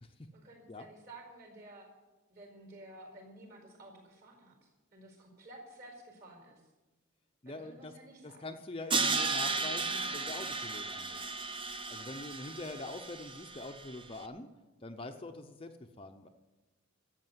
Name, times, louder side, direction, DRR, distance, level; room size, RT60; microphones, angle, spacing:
voice 1, 0.3-1.9 2.3-6.6 7.4-8.4, right 1 dB, 45° right, 2 dB, 4.9 m, -53 dB
voice 2, 7.4-7.9 8.2-11.2 11.9-14.5 14.8-16.3, left 2 dB, 25° left, 6 dB, 0.6 m, -44 dB
Crash cymbal, 8.9-14.0, right 4 dB, 25° right, 0.6 m, -34 dB
13.5 x 8.2 x 9.6 m, 1.1 s
head